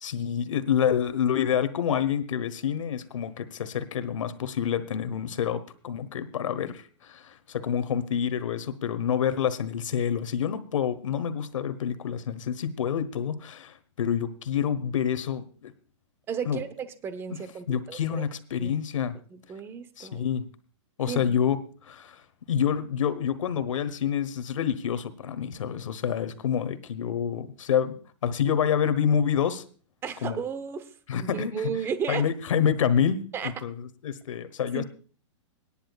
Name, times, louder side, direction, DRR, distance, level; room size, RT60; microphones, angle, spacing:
voice 1, 0.0-15.7 16.4-16.6 17.3-17.4 17.7-19.2 20.0-20.4 21.0-21.6 21.8-29.6 30.2-30.4 31.1-31.7 32.1-34.8, left 8 dB, 80° left, 13 dB, 1.2 m, -28 dB
voice 2, 16.3-18.3 18.6-18.7 19.3-20.2 21.1-21.4 30.0-30.9 31.2-32.2 33.3-33.5 34.7-34.8, right 7 dB, 15° right, 12 dB, 0.8 m, -34 dB
26.0 x 10.0 x 2.4 m, 0.39 s
hypercardioid pair, 155°, 16 cm